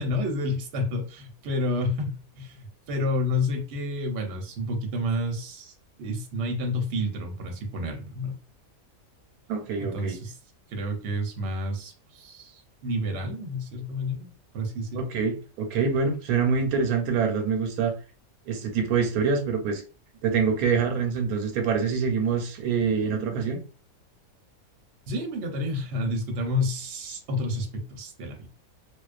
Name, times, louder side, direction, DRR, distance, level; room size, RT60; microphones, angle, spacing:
voice 1, 0.0-8.4 9.8-10.4 10.7-14.3 14.5-15.1 25.1-28.5, left 1 dB, 60° right, 2 dB, 0.9 m, -30 dB
voice 2, 9.5-10.2 14.9-17.9 18.5-19.8 20.2-23.6, right 5 dB, 90° right, 5 dB, 1.1 m, -25 dB
2.4 x 2.2 x 2.4 m, 0.35 s
omnidirectional pair, 1.5 m